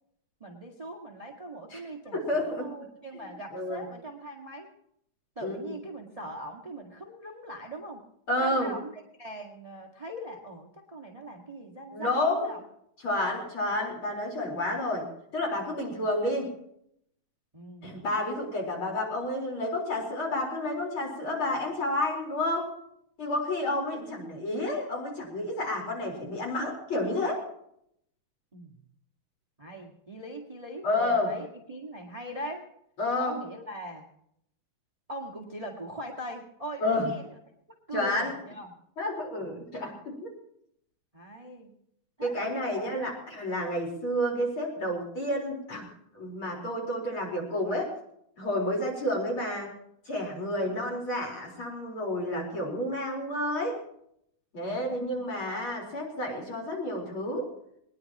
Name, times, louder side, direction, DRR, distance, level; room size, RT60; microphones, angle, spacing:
voice 1, 0.4-4.7 5.3-8.0 8.4-12.6 17.5-18.0 23.7-24.1 28.5-28.8 29.6-32.6 33.2-34.1 35.1-37.3 37.9-38.7 39.4-39.6 41.1-41.7 42.2-43.0 50.6-51.0 54.8-55.2, right 1 dB, 30° right, 1 dB, 0.6 m, -41 dB
voice 2, 2.1-2.7 3.1-3.9 5.4-5.8 8.3-8.7 11.9-12.5 13.0-15.1 15.3-16.5 17.8-22.7 23.2-27.4 30.8-31.3 33.0-33.4 36.8-37.1 37.9-38.3 39.0-40.3 42.2-48.0 48.4-49.7 50.0-53.8 54.5-57.5, left 1 dB, 35° left, 0 dB, 4.9 m, -30 dB
21.0 x 20.5 x 3.0 m, 0.73 s
omnidirectional pair, 4.4 m